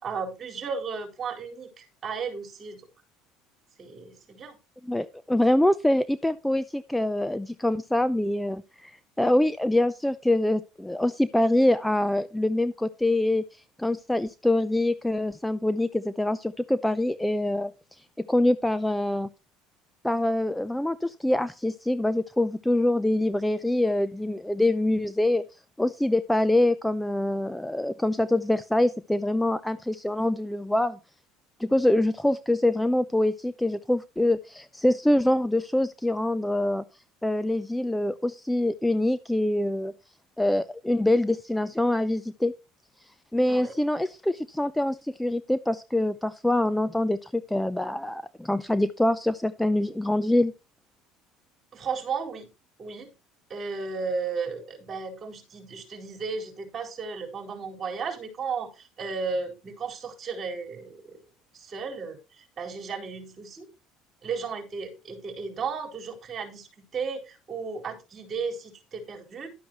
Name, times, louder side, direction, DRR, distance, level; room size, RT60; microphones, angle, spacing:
voice 1, 0.0-2.9 3.8-4.6 43.5-43.7 51.7-52.5 52.8-53.1 53.5-61.2 61.5-63.7 64.2-69.5, right 5 dB, 35° right, 2 dB, 4.5 m, -34 dB
voice 2, 4.8-13.4 13.8-17.7 18.2-19.3 20.0-25.4 25.8-31.0 31.6-36.8 37.2-39.9 40.4-42.5 43.3-50.5, left 1 dB, 5° left, 14 dB, 0.6 m, -25 dB
12.0 x 10.0 x 3.0 m, 0.29 s
hypercardioid pair, 80°, 0 cm